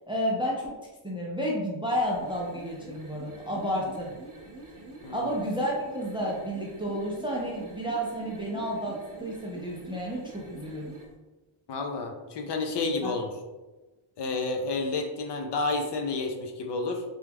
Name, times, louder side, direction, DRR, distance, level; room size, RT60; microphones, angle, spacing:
voice 1, 0.1-0.7 1.0-4.1 5.1-10.9 13.0-13.1, equal, 10° right, -3 dB, 0.4 m, -31 dB
sound 1, 1.9-11.1, right 2 dB, 40° right, 0.7 m, -46 dB
voice 2, 11.7-13.3 14.2-17.0, left 3 dB, 55° left, 3 dB, 0.5 m, -30 dB
3.0 x 2.3 x 3.4 m, 1.2 s
wide cardioid pair, 155°, 50 cm